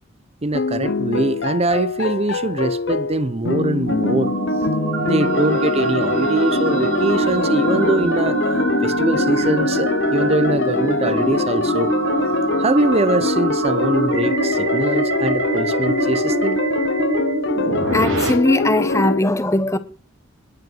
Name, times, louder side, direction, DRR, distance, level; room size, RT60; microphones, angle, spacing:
voice 1, 0.4-4.3 5.0-8.4 8.8-11.9 12.6-16.6, right 2 dB, 30° right, 0.7 m, -22 dB
sound 1, 0.5-19.2, left 3 dB, 60° left, 0.8 m, -23 dB
sound 2, 3.2-18.3, right 3 dB, 80° right, 5.6 m, -26 dB
sound 3, 3.7-14.7, equal, 35° left, 2.7 m, -30 dB
voice 2, 17.9-19.8, left 1 dB, 15° left, 1.2 m, -19 dB
20.5 x 7.8 x 7.7 m
head